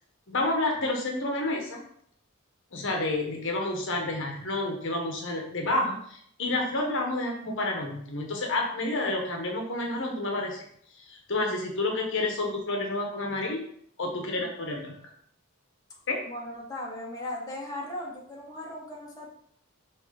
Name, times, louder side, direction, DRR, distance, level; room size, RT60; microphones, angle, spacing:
voice 1, 0.3-1.8 2.7-10.6 11.1-13.6 14.0-14.9 16.1-16.2, left 2 dB, 60° left, 1 dB, 1.1 m, -29 dB
voice 2, 16.3-19.3, left 1 dB, 15° left, -3 dB, 1.5 m, -37 dB
6.2 x 3.9 x 5.1 m, 0.66 s
head